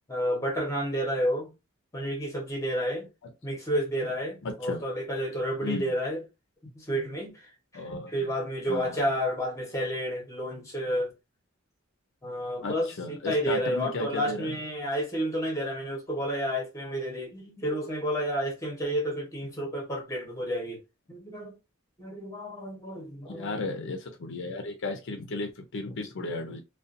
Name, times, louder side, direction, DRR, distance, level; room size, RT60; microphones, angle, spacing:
voice 1, 0.1-1.5 1.9-3.1 3.4-6.2 6.6-11.1 12.2-20.8 21.1-21.6 22.0-23.6, equal, 15° left, 1.0 m, -31 dB
voice 2, 4.4-4.8 5.6-5.9 7.7-8.3 8.7-9.0 12.6-14.5 23.3-26.6, left 2 dB, 60° left, 0.5 m, -34 dB
2.5 x 2.2 x 2.5 m
head